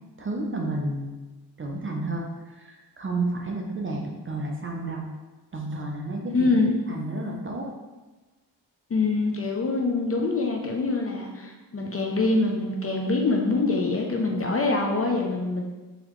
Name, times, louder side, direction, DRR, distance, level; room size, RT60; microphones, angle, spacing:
voice 1, 0.2-1.1 1.6-2.3 2.6-5.1 5.5-6.5 6.9-7.7, right 2 dB, 30° right, 0 dB, 0.4 m, -31 dB
voice 2, 6.3-6.7 8.9-15.6, left 3 dB, 35° left, 1 dB, 0.4 m, -24 dB
3.9 x 2.9 x 3.0 m, 1.2 s
wide cardioid pair, 120°, 42 cm